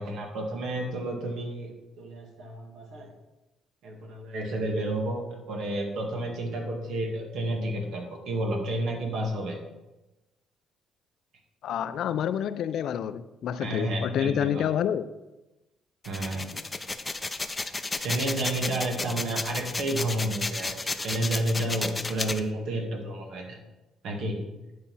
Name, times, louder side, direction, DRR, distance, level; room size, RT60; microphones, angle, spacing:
voice 1, 0.0-1.7 2.0-3.1 3.8-9.6 13.6-14.7 16.1-16.4 18.0-23.6 24.0-24.4, right 1 dB, 75° right, 2.0 m, -31 dB
voice 2, 11.6-15.1, left 9 dB, 70° left, 0.5 m, -28 dB
sound 1, 16.0-22.4, left 3 dB, 20° left, 0.6 m, -32 dB
10.5 x 4.2 x 5.5 m
cardioid pair, 100°, 0 cm